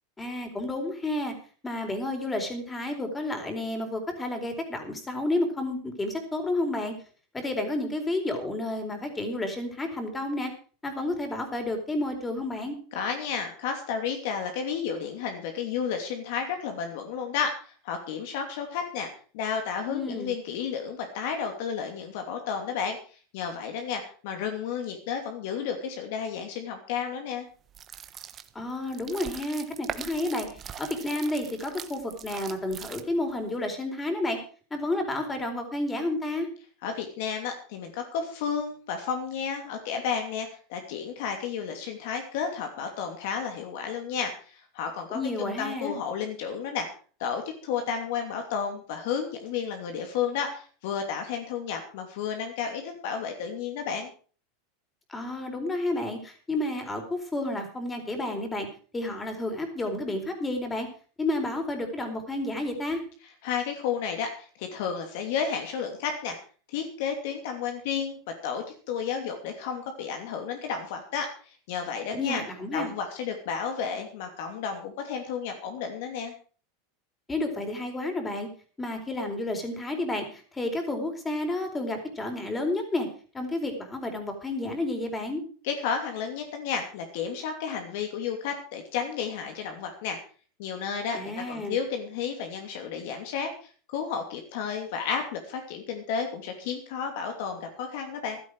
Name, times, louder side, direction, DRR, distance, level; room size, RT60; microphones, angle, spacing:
voice 1, 0.2-1.3 1.6-7.0 7.3-10.5 10.8-12.8 19.9-20.3 28.5-34.4 34.7-36.5 45.1-46.0 55.1-58.7 58.9-60.9 61.2-63.0 72.1-72.9 77.3-78.5 78.8-83.1 83.3-85.4 91.1-91.8, left 2 dB, 15° left, 5 dB, 4.1 m, -31 dB
voice 2, 12.9-19.1 19.3-23.0 23.3-27.5 36.8-46.9 47.2-54.1 63.4-66.4 66.7-72.4 72.7-76.3 85.6-90.2 90.6-93.5 93.9-98.4, left 6 dB, 65° left, 4 dB, 2.8 m, -32 dB
sound 1, 27.7-33.4, right 9 dB, 30° right, 1.2 m, -41 dB
15.0 x 12.5 x 4.8 m, 0.40 s
supercardioid pair, 140°, 0 cm